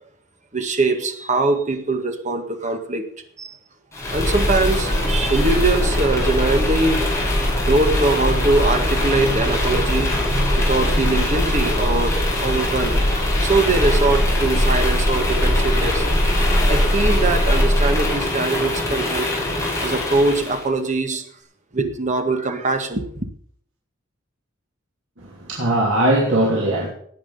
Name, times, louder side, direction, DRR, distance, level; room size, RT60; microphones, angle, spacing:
voice 1, 0.5-3.1 3.4-3.5 4.1-19.3 19.7-21.3 21.7-23.3, right 2 dB, 40° right, 1.8 m, -22 dB
sound 1, 3.9-20.6, left 1 dB, 15° left, 5.4 m, -20 dB
voice 2, 25.2-26.9, right 1 dB, 70° right, 2.9 m, -20 dB
18.0 x 8.8 x 5.6 m
head